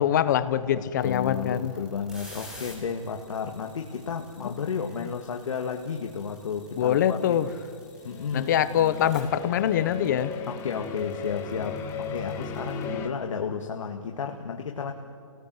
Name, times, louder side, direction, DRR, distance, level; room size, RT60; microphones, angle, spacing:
voice 1, 0.0-1.7 4.4-4.5 6.8-7.5 8.3-10.3, left 10 dB, 35° left, 14 dB, 0.9 m, -24 dB
voice 2, 0.8-7.5 8.0-8.6 10.5-14.9, left 6 dB, 70° left, 3 dB, 1.9 m, -32 dB
sound 1, 1.0-12.8, left 1 dB, 5° right, 3.3 m, -49 dB
sound 2, 8.0-13.1, left 6 dB, 15° left, 1.2 m, -36 dB
28.0 x 18.5 x 7.8 m, 2.2 s
hypercardioid pair, 165°, 17 cm